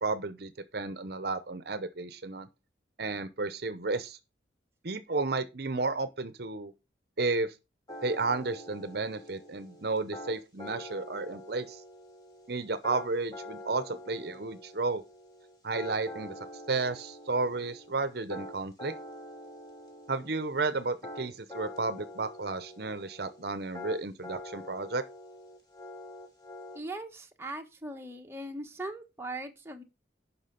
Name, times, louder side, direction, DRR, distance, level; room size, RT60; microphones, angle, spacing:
voice 1, 0.0-2.5 3.0-4.2 4.8-6.7 7.2-7.5 8.0-11.8 12.5-15.0 15.6-16.3 16.7-18.9 20.1-25.0, right 3 dB, 55° right, 0.8 m, -32 dB
sound 1, 7.9-26.8, left 1 dB, 20° left, 3.1 m, -46 dB
voice 2, 26.7-29.8, right 2 dB, 15° right, 1.2 m, -40 dB
10.0 x 5.8 x 5.3 m
head